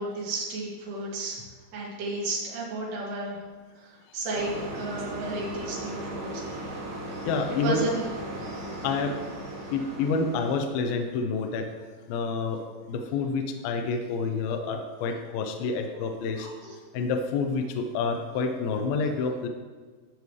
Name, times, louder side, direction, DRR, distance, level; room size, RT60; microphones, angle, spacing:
voice 1, 0.0-1.4 1.7-3.4 3.8-6.7 7.6-8.1 16.0-16.8, right 2 dB, 80° right, -5 dB, 4.2 m, -33 dB
sound 1, 4.3-10.6, right 1 dB, 55° right, 3.3 m, -37 dB
voice 2, 7.2-7.8 8.8-9.2 9.7-11.7 12.1-12.6 12.9-16.5 16.9-19.5, left 4 dB, 75° left, 5 dB, 2.3 m, -28 dB
13.0 x 7.0 x 3.2 m, 1.5 s
omnidirectional pair, 4.8 m